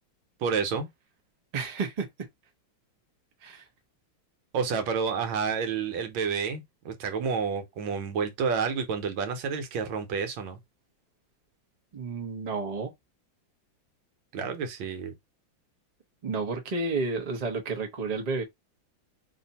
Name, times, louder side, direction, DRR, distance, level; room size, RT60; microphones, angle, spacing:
voice 1, 0.4-0.9 4.5-10.6 14.3-15.1, right 6 dB, 75° right, 1.6 m, -29 dB
voice 2, 1.5-2.1 3.4-3.6 11.9-12.9 16.2-18.4, right 4 dB, 45° right, 0.5 m, -31 dB
3.3 x 2.6 x 4.1 m
omnidirectional pair, 2.2 m